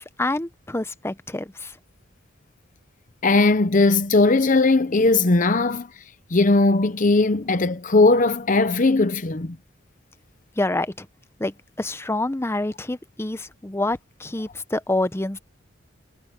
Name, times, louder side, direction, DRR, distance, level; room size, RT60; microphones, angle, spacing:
voice 1, 0.0-1.7 10.6-11.1 11.4-15.4, left 2 dB, 15° left, 0.6 m, -27 dB
voice 2, 3.2-5.9 6.3-9.6, left 3 dB, 40° left, 0.8 m, -18 dB
head